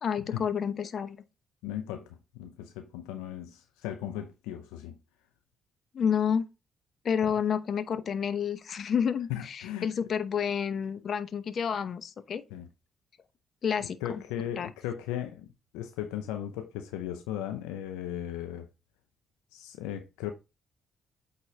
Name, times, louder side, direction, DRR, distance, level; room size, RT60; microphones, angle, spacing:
voice 1, 0.0-1.2 5.9-6.4 7.0-12.4 13.6-14.2 14.6-14.7, left 7 dB, 60° left, 0.8 m, -29 dB
voice 2, 1.6-5.0 7.2-7.3 9.3-9.9 12.5-12.7 13.8-15.5 15.7-18.7 19.5-20.3, left 11 dB, 85° left, 0.6 m, -37 dB
8.5 x 4.1 x 3.2 m
hypercardioid pair, 50°, 0 cm